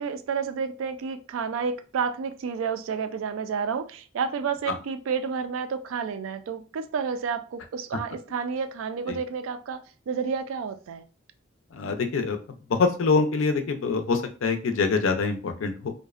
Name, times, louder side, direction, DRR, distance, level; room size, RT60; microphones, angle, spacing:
voice 1, 0.0-11.0, right 6 dB, 85° right, 0.3 m, -30 dB
voice 2, 11.7-12.4 12.7-15.9, left 4 dB, 85° left, 0.4 m, -25 dB
2.5 x 2.1 x 2.3 m
head